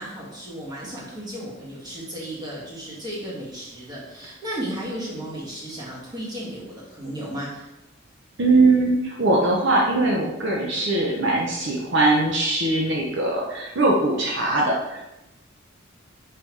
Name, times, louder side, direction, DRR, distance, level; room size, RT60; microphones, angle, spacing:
voice 1, 0.0-7.7, right 1 dB, 20° right, -6 dB, 2.3 m, -34 dB
voice 2, 8.4-15.1, right 2 dB, 60° right, -2 dB, 1.0 m, -21 dB
5.7 x 4.8 x 4.8 m, 0.95 s
head